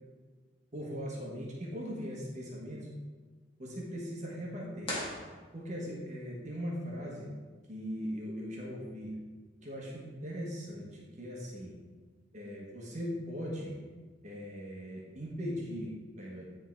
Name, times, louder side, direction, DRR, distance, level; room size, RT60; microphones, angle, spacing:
voice 1, 0.7-2.9 3.6-4.9 5.5-7.3 7.7-9.1 9.6-11.7 12.3-13.8 14.2-16.5, equal, 40° right, -3 dB, 1.2 m, -39 dB
sound 1, 4.8-6.0, left 1 dB, 30° left, 1.7 m, -39 dB
9.6 x 3.7 x 4.5 m, 1.4 s
head